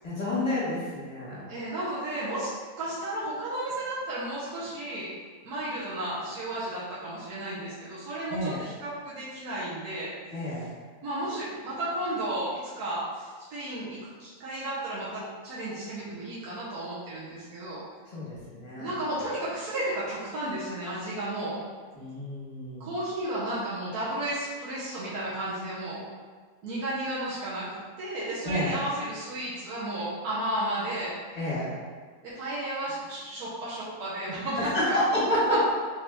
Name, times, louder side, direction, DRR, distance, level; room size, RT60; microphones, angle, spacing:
voice 1, 0.0-1.4 8.3-8.6 10.3-10.6 18.1-18.9 21.9-22.9 28.4-28.8 31.3-31.7 34.6-35.4, left 1 dB, 30° left, -9 dB, 1.4 m, -30 dB
voice 2, 1.5-2.5 2.8-5.1 5.4-10.1 11.0-17.8 18.8-21.6 22.8-26.1 26.6-27.6 28.0-31.1 32.2-35.0 35.5-35.6, right 1 dB, 90° right, -9 dB, 1.4 m, -33 dB
4.2 x 2.7 x 3.4 m, 1.5 s
omnidirectional pair, 1.6 m